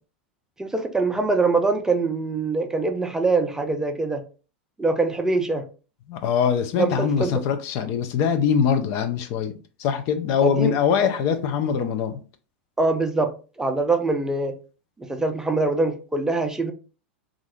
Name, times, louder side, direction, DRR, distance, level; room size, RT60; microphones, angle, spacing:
voice 1, 0.6-4.2 4.8-5.6 6.8-7.4 10.4-10.7 11.0-11.1 12.8-13.3 13.6-14.5 15.0-16.7, right 3 dB, 10° right, 0.4 m, -23 dB
voice 2, 6.1-9.5 9.8-12.2, left 7 dB, 50° left, 0.5 m, -23 dB
2.6 x 2.4 x 3.4 m
hypercardioid pair, 95°, 6 cm